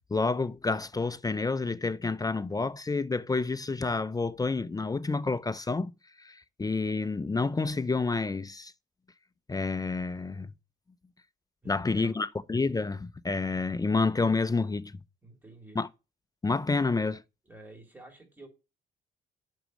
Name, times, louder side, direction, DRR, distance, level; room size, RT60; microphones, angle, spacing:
voice 1, 0.1-5.9 6.2-8.7 9.5-10.5 11.7-14.9 15.8-15.9 16.4-17.2, left 3 dB, 20° left, 0.5 m, -29 dB
voice 2, 11.6-12.2 15.2-15.8 17.4-18.5, right 2 dB, 10° right, 3.5 m, -50 dB
8.0 x 6.4 x 6.4 m
cardioid pair, 90°, 20 cm